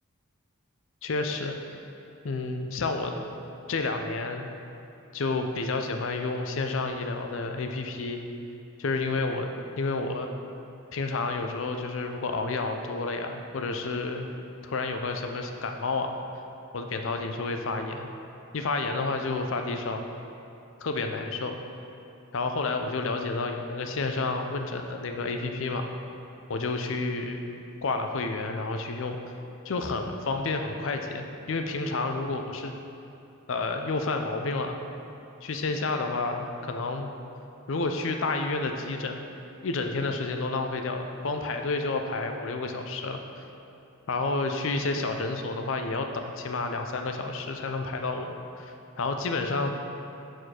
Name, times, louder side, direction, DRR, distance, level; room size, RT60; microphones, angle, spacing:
voice 1, 1.0-1.8 2.2-3.2 3.7-4.5 5.1-8.2 8.8-9.5 9.8-10.3 10.9-14.3 14.6-16.1 16.7-18.1 18.5-20.0 20.8-21.6 22.3-25.9 26.5-27.4 27.8-29.2 29.6-32.7 33.5-34.8 35.4-37.1 37.7-39.2 39.6-43.2 44.1-49.7, left 3 dB, 65° left, 5 dB, 0.5 m, -30 dB
6.5 x 4.6 x 4.4 m, 2.8 s
head